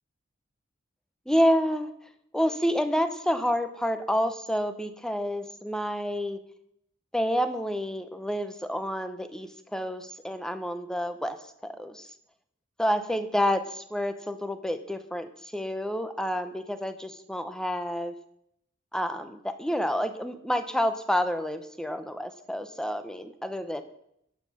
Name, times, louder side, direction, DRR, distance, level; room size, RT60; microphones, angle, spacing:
voice 1, 1.3-1.9 2.3-6.4 7.1-11.4 11.6-12.1 12.8-18.1 18.9-23.8, equal, 5° left, 9 dB, 0.8 m, -29 dB
12.0 x 7.5 x 6.4 m, 0.75 s
head